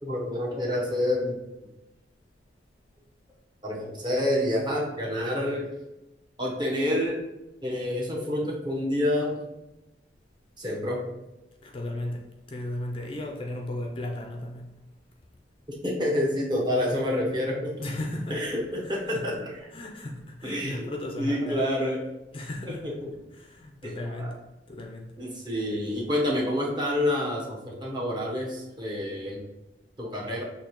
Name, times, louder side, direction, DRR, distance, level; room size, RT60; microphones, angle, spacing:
voice 1, 0.0-1.4 3.6-5.7 6.4-7.2 7.6-9.4 10.6-11.0 15.8-17.7 18.3-19.3 20.4-20.9 21.2-22.0 23.8-24.3 25.2-29.4 30.0-30.4, left 1 dB, 25° right, 0.9 m, -28 dB
voice 2, 11.6-14.8 17.8-18.5 18.8-19.4 19.7-21.7 22.3-22.9 23.3-25.2, left 1 dB, 30° left, 0.4 m, -36 dB
6.4 x 2.8 x 3.0 m
head